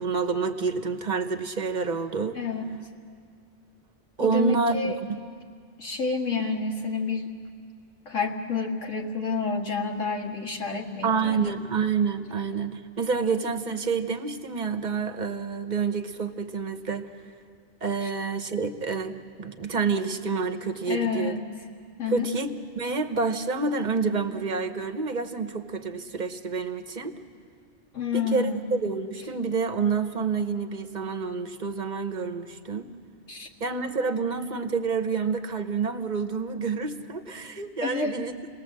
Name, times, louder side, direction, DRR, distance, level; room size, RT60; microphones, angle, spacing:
voice 1, 0.0-2.4 4.2-5.2 11.0-17.1 17.8-21.4 22.1-27.1 28.1-32.9 33.6-38.3, right 5 dB, 40° right, 8 dB, 1.1 m, -28 dB
voice 2, 4.2-4.9 5.8-7.2 8.1-11.4 20.9-21.4 22.0-22.3 27.9-28.7 33.3-33.5 37.8-38.3, left 4 dB, 80° left, 1 dB, 2.1 m, -29 dB
29.0 x 19.0 x 7.6 m, 2.2 s
omnidirectional pair, 1.2 m